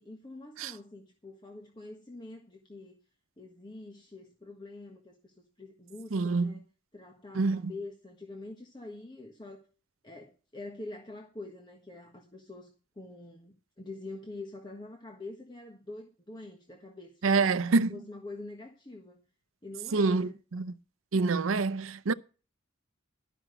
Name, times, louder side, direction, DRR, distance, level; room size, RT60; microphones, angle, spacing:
voice 1, 0.0-3.0 3.4-6.6 6.9-9.6 10.0-19.2 19.6-20.4, left 2 dB, 20° left, 1.4 m, -45 dB
voice 2, 6.1-6.5 7.3-7.7 17.2-18.0 19.9-20.7 21.1-22.1, right 4 dB, 85° right, 0.6 m, -26 dB
12.5 x 6.0 x 7.9 m
head